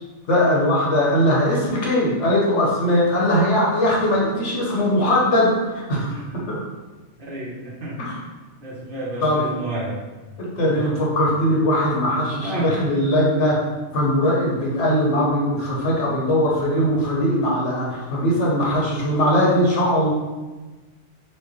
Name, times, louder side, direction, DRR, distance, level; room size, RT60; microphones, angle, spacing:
voice 1, 0.3-6.2 6.5-6.6 8.0-8.2 9.2-9.4 10.4-13.6 13.9-20.1, equal, 75° left, -4 dB, 1.3 m, -20 dB
voice 2, 5.9-6.5 7.2-8.3 8.6-10.0 10.6-10.8 12.4-12.7, right 2 dB, 50° right, -6 dB, 1.0 m, -31 dB
4.6 x 2.1 x 3.1 m, 1.2 s
omnidirectional pair, 1.2 m